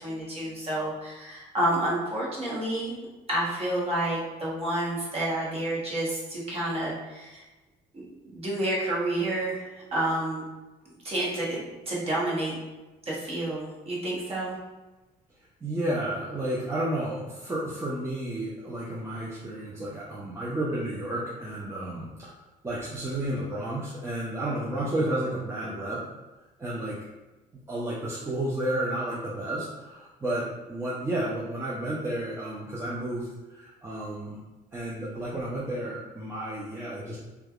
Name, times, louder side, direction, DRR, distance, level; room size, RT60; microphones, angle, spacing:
voice 1, 0.0-3.0 3.3-7.4 7.9-10.4 11.0-12.6 13.1-14.5, right 1 dB, 35° right, -6 dB, 1.0 m, -29 dB
voice 2, 15.6-22.3 22.6-26.0 26.6-27.0 27.7-34.4 34.7-37.2, right 1 dB, 15° right, -7 dB, 0.5 m, -32 dB
3.1 x 2.3 x 2.3 m, 1.1 s
cardioid pair, 110°, 17 cm